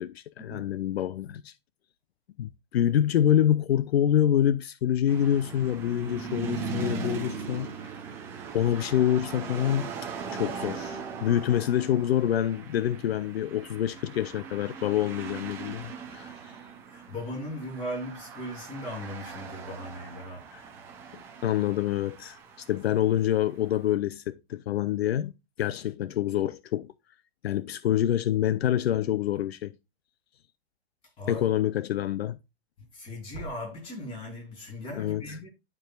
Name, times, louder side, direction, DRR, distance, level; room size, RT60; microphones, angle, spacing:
voice 1, 0.0-1.5 2.4-7.9 8.5-9.9 10.3-16.3 20.5-20.6 21.4-22.4 22.7-25.3 25.6-26.9 27.4-29.7 31.3-32.4 34.9-35.4, left 11 dB, 75° left, 0.6 m, -26 dB
sound 1, 5.1-23.5, right 5 dB, 5° right, 0.4 m, -40 dB
voice 2, 16.9-20.4 31.2-31.4 32.9-35.5, left 1 dB, 15° left, 3.1 m, -38 dB
12.0 x 4.7 x 2.3 m
hypercardioid pair, 160°, 31 cm